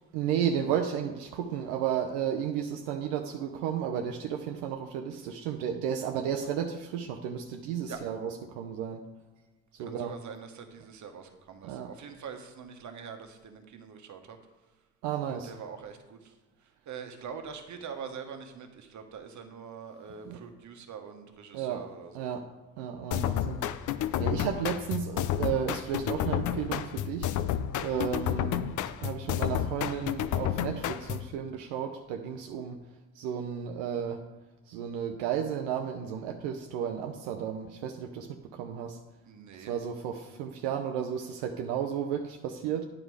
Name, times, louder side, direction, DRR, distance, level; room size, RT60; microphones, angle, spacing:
voice 1, 0.1-9.0 9.8-10.2 11.6-11.9 15.0-15.5 20.3-20.4 21.5-21.9 22.1-22.5 22.8-23.6 24.2-27.3 27.8-28.7 29.0-32.8 33.2-34.2 34.7-39.0 39.7-42.8, right 8 dB, 80° right, 4 dB, 0.7 m, -33 dB
voice 2, 9.8-14.4 15.3-16.3 16.9-22.3 39.2-39.7, right 6 dB, 50° right, 6 dB, 1.3 m, -44 dB
sound 1, 23.1-31.3, left 10 dB, 55° left, 0.5 m, -31 dB
9.1 x 4.9 x 4.8 m, 1.2 s
hypercardioid pair, 60°, 38 cm